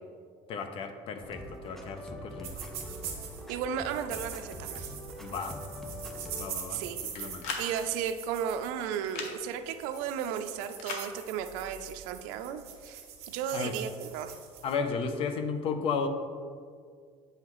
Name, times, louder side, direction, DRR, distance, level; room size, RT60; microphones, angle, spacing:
voice 1, 0.5-2.6 5.2-5.6 6.4-7.5 13.5-13.7 14.6-16.1, left 5 dB, 45° left, 7 dB, 0.6 m, -34 dB
sound 1, 1.2-6.5, equal, ahead, 0.6 m, -43 dB
sound 2, 2.4-3.4 3.8-14.7, right 8 dB, 55° right, 1.5 m, -43 dB
voice 2, 3.5-4.9 6.7-7.0 7.6-14.4, right 8 dB, 85° right, 9 dB, 0.5 m, -34 dB
sound 3, 7.1-7.7 9.0-9.3 10.8-11.1, left 5 dB, 65° left, 0.9 m, -36 dB
8.6 x 5.7 x 3.1 m, 2.1 s
cardioid pair, 140°, 13 cm